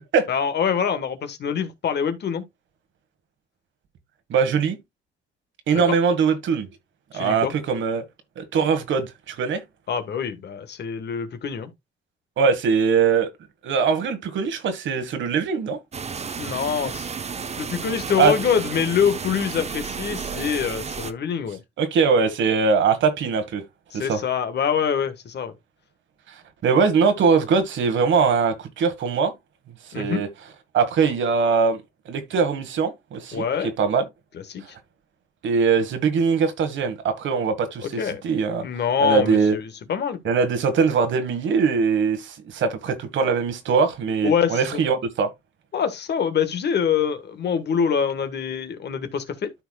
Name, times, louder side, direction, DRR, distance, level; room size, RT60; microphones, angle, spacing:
voice 1, 0.3-2.4 7.1-7.5 9.9-11.7 16.4-17.1 17.6-21.6 23.9-25.5 29.9-30.2 33.3-33.7 34.3-34.6 37.8-38.2 38.6-40.2 44.2-44.8 45.7-49.5, left 7 dB, 60° left, 1.4 m, -25 dB
voice 2, 4.3-4.8 5.7-6.7 7.1-8.0 8.4-9.6 12.4-13.3 13.6-15.8 18.2-18.3 21.8-23.6 23.9-24.2 26.3-29.3 29.9-30.3 30.7-33.4 33.8-34.0 35.4-38.7 39.0-39.5 40.2-45.3, right 5 dB, 70° right, 1.6 m, -21 dB
sound 1, 15.9-21.1, right 6 dB, 35° right, 0.9 m, -32 dB
12.5 x 4.6 x 2.3 m
cardioid pair, 90°, 20 cm